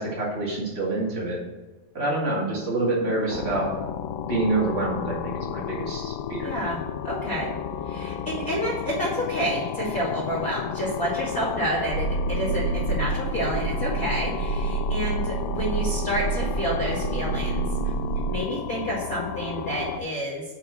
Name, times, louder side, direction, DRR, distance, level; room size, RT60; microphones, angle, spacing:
voice 1, 0.0-1.4 1.9-3.7 4.3-6.5, right 2 dB, 30° right, -4 dB, 1.2 m, -27 dB
sound 1, 3.3-20.0, left 8 dB, 90° left, 2.7 m, -33 dB
voice 2, 6.4-7.5 7.8-17.9 18.3-20.4, equal, 30° left, -5 dB, 1.7 m, -29 dB
sound 2, 11.9-18.4, right 5 dB, 90° right, 2.6 m, -28 dB
7.0 x 5.0 x 6.0 m, 1.2 s
omnidirectional pair, 4.7 m